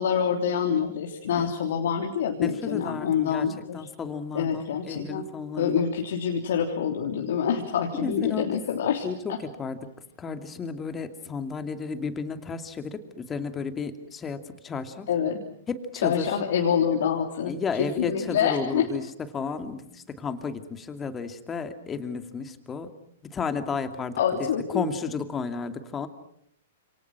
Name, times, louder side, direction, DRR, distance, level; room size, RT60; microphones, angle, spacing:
voice 1, 0.0-3.9 4.3-5.3 5.6-9.4 15.1-15.4 16.0-17.6 18.0-18.9 24.2-24.9, left 8 dB, 55° left, 2 dB, 3.3 m, -26 dB
voice 2, 2.4-5.8 7.9-8.6 9.0-9.9 10.2-15.1 15.7-16.4 17.4-19.1 19.3-22.9 23.2-26.1, left 5 dB, 15° left, 8 dB, 2.6 m, -33 dB
29.5 x 28.0 x 6.1 m, 0.73 s
figure-of-eight pair, 110°, 0 cm